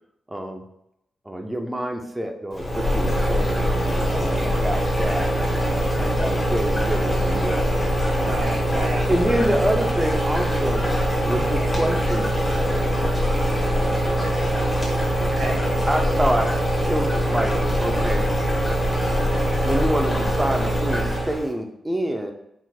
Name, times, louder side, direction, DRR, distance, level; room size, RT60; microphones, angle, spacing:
voice 1, 0.3-0.6 1.2-3.6 4.1-7.7 8.9-10.9 11.2-12.3 14.7-14.9 15.9-16.5 16.8-18.3 19.6-22.3, right 1 dB, 15° right, 4 dB, 0.7 m, -27 dB
sound 1, 2.5-21.5, equal, 20° left, 1.3 m, -22 dB
voice 2, 4.1-4.5 8.1-9.1 11.1-11.5 15.2-15.6, right 2 dB, 70° right, -2 dB, 1.6 m, -32 dB
4.4 x 3.8 x 2.4 m, 0.81 s
supercardioid pair, 45°, 0 cm